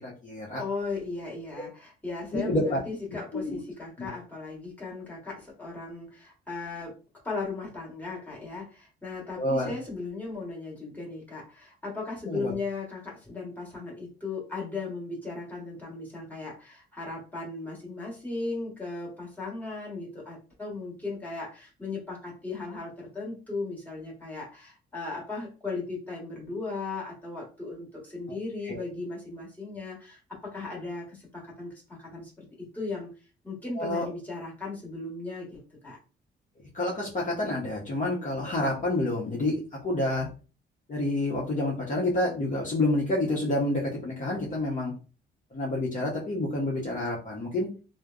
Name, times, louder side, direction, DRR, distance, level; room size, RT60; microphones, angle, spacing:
voice 1, 0.0-0.6 2.3-2.8 3.3-3.6 4.0-4.1 9.4-9.7 12.3-12.5 28.6-28.8 33.8-34.1 36.7-40.3 40.9-44.9 45.5-47.7, left 1 dB, 40° left, -4 dB, 0.9 m, -28 dB
voice 2, 0.6-7.0 7.2-33.1 33.4-36.0, left 3 dB, 10° left, -4 dB, 1.4 m, -37 dB
3.2 x 2.1 x 2.4 m, 0.34 s
cardioid pair, 90°, 20 cm